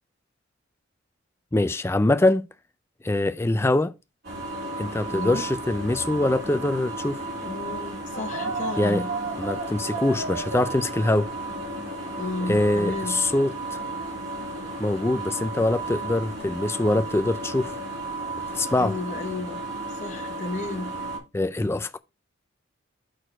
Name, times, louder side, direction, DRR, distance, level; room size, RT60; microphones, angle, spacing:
voice 1, 1.5-2.5 3.0-3.9 4.8-7.2 8.8-9.0 9.4-11.3 12.4-13.8 14.8-17.8 18.5-18.9 21.3-22.0, left 2 dB, 10° left, 0.3 m, -23 dB
sound 1, 4.2-21.2, right 2 dB, 55° right, 2.8 m, -34 dB
voice 2, 5.1-5.4 7.4-9.1 12.2-13.2 18.8-19.6 20.0-20.9, left 2 dB, 35° left, 1.0 m, -33 dB
sound 2, 8.1-14.0, right 3 dB, 85° right, 1.3 m, -36 dB
6.4 x 4.4 x 4.4 m
head